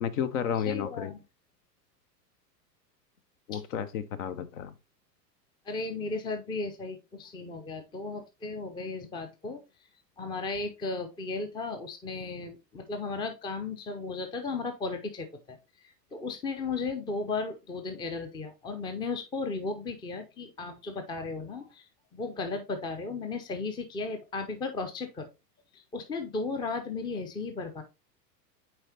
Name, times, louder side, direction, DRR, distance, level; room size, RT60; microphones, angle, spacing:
voice 1, 0.0-1.1 3.5-4.7, left 8 dB, 50° left, 0.8 m, -32 dB
voice 2, 0.7-1.2 3.5-3.6 5.7-9.6 10.2-15.6 16.1-21.8 22.1-25.3 25.7-27.8, left 3 dB, 10° left, 0.6 m, -35 dB
8.8 x 4.3 x 2.8 m
figure-of-eight pair, 90°, 50 cm